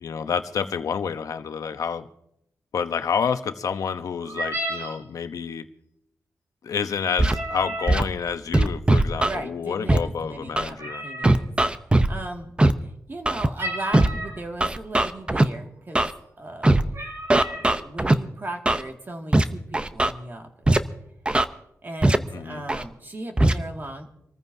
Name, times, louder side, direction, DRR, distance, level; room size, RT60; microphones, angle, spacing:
voice 1, 0.0-2.1 2.7-5.6 6.6-11.0 22.3-22.6, left 6 dB, 80° left, 9 dB, 0.9 m, -29 dB
sound 1, 4.2-5.0 7.2-8.0 10.8-11.4 13.6-14.4 15.2-15.3 15.7-16.0 16.5-16.6 16.9-17.7, right 1 dB, 55° right, 3.8 m, -32 dB
Scratching (performance technique), 7.2-7.4 7.9-8.0 8.5-9.4 9.9-10.0 10.6-10.7 11.2-12.1 12.6-12.7 13.3-13.5 13.9-14.1 14.6-15.4 16.0-16.1 16.6-16.8 17.3-18.1 18.7-18.8 19.3-19.4 19.7-20.1 20.7-20.8 21.3-21.4 22.0-22.2 22.7-22.8 23.4-23.5, right 2 dB, 20° right, 0.7 m, -19 dB
voice 2, 9.2-10.8 11.0-11.6 12.1-12.5 12.8-16.0 16.4-16.8 17.4-20.7 21.8-24.1, right 2 dB, 35° right, 2 dB, 2.0 m, -37 dB
26.5 x 14.5 x 2.7 m, 0.78 s
wide cardioid pair, 85°, 6 cm